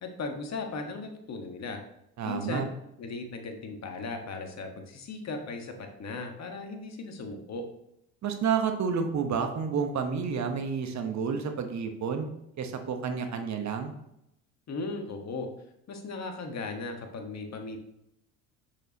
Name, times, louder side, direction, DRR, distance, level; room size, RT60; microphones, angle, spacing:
voice 1, 0.0-1.8 2.2-2.7 3.0-7.6 14.7-15.5 15.9-17.8, left 3 dB, 40° left, 4 dB, 1.5 m, -37 dB
voice 2, 2.2-2.6 8.2-12.3 12.6-13.9, right 6 dB, 40° right, 6 dB, 1.2 m, -30 dB
6.6 x 6.3 x 2.9 m, 0.81 s
hypercardioid pair, 75°, 41 cm